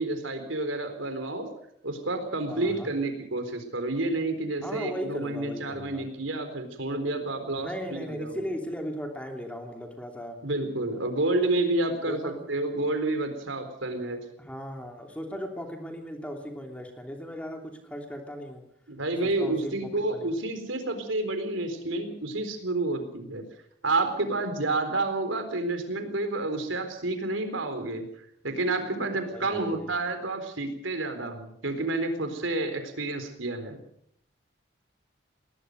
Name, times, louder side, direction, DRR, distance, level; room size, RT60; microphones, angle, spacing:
voice 1, 0.0-1.5 1.8-8.4 10.4-14.2 18.9-23.4 23.8-28.0 28.4-33.8, right 2 dB, 90° right, 7 dB, 4.1 m, -29 dB
voice 2, 2.5-2.9 4.6-6.0 7.5-10.4 10.9-11.1 12.1-12.4 14.4-18.6 19.2-20.3 29.3-29.9, equal, 5° left, 3 dB, 2.9 m, -37 dB
20.5 x 19.5 x 6.5 m, 0.70 s
head